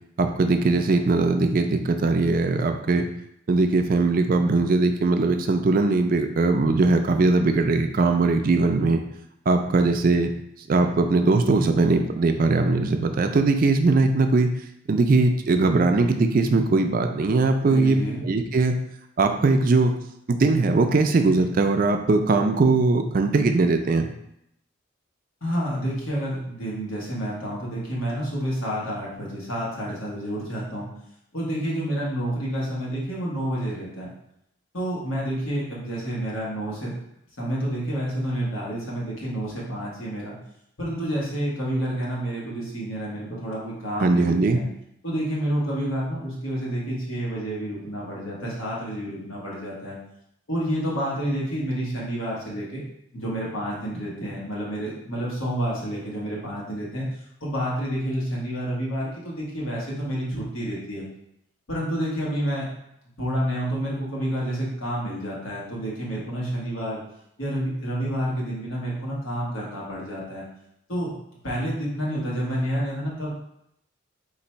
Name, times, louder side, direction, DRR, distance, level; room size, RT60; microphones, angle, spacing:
voice 1, 0.2-3.1 3.5-9.0 9.5-10.3 10.7-14.5 14.9-18.8 19.2-19.9 20.3-24.1 44.0-44.6, right 3 dB, 45° right, 6 dB, 0.3 m, -20 dB
voice 2, 17.6-18.2 25.4-30.9 31.3-34.1 34.7-37.0 37.4-40.4 40.8-44.6 45.0-50.0 50.5-52.8 53.1-57.1 57.4-61.0 61.7-62.7 63.2-67.0 67.4-70.4 70.9-71.1 71.4-73.3, equal, 80° left, -5 dB, 1.5 m, -29 dB
3.9 x 2.6 x 4.3 m, 0.78 s
head